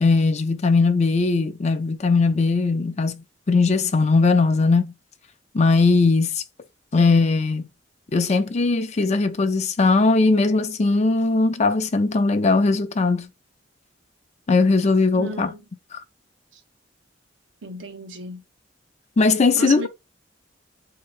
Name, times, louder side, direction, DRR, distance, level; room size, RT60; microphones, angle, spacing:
voice 1, 0.0-4.9 5.5-6.4 6.9-7.7 8.1-13.3 14.5-15.5 15.9-16.0 19.2-19.9, left 3 dB, 35° left, 0.5 m, -19 dB
voice 2, 15.1-15.6 17.6-18.4 19.5-19.9, right 3 dB, 85° right, 0.9 m, -33 dB
4.4 x 2.8 x 2.5 m
head